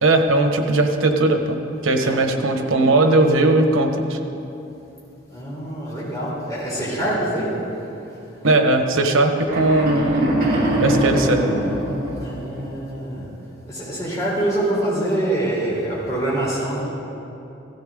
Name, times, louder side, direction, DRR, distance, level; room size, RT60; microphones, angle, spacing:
voice 1, 0.0-4.2 8.4-11.6, right 2 dB, 90° right, 5 dB, 1.1 m, -19 dB
voice 2, 2.0-2.3 5.3-7.5 12.2-13.3 13.7-16.8, right 1 dB, 15° left, -8 dB, 3.7 m, -25 dB
sound 1, 9.4-12.7, right 1 dB, 45° right, 2.9 m, -22 dB
16.0 x 13.5 x 3.7 m, 2.9 s
head